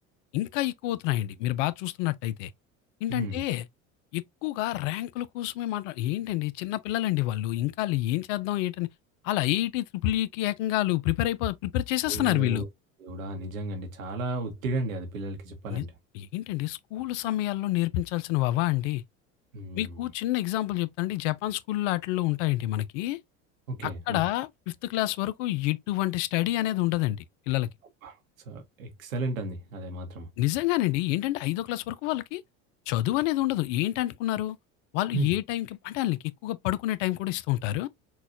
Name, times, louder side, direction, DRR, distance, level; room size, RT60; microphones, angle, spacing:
voice 1, 0.3-2.5 3.0-3.7 4.1-8.9 9.2-12.6 15.7-15.9 16.1-19.0 19.8-23.2 23.8-27.7 30.4-32.4 32.9-34.6 34.9-37.9, left 15 dB, 70° left, 0.5 m, -28 dB
voice 2, 3.1-3.4 12.0-12.7 13.0-15.9 19.5-20.1 23.7-24.2 28.0-28.2 28.5-30.3 35.1-35.3, right 2 dB, 85° right, 0.9 m, -34 dB
4.0 x 2.3 x 2.4 m
hypercardioid pair, 75°, 39 cm